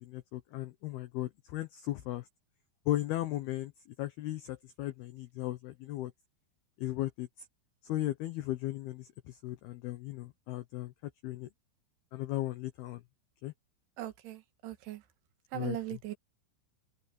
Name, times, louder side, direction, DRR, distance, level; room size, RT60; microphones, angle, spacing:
voice 1, 0.0-2.3 2.9-3.7 4.0-6.1 6.8-7.5 7.8-10.9 11.2-11.5 12.1-13.0 13.4-13.5 15.5-16.1, left 15 dB, 85° left, 2.2 m, -36 dB
voice 2, 14.0-15.0 15.5-16.1, right 13 dB, 70° right, 3.1 m, -39 dB
open air
omnidirectional pair, 5.8 m